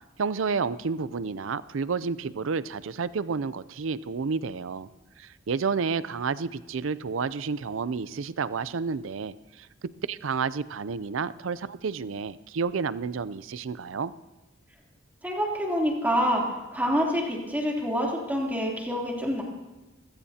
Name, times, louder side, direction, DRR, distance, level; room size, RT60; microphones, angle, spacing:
voice 1, 0.2-4.9 5.2-14.1, right 5 dB, 80° right, 16 dB, 0.5 m, -30 dB
voice 2, 15.2-16.4 16.7-19.4, equal, 10° right, -2 dB, 3.1 m, -26 dB
26.5 x 16.0 x 2.8 m, 1.0 s
head